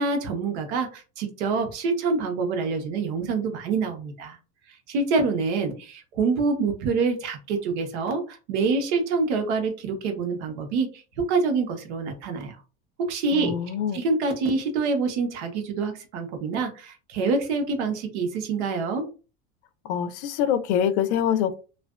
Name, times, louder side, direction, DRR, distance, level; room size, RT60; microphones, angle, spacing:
voice 1, 0.0-4.4 4.9-12.6 13.0-13.5 13.9-19.1, right 4 dB, 85° right, 5 dB, 0.8 m, -26 dB
voice 2, 13.3-14.0 19.8-21.5, left 9 dB, 85° left, 12 dB, 0.5 m, -25 dB
2.4 x 2.2 x 2.3 m, 0.33 s
supercardioid pair, 125°, 33 cm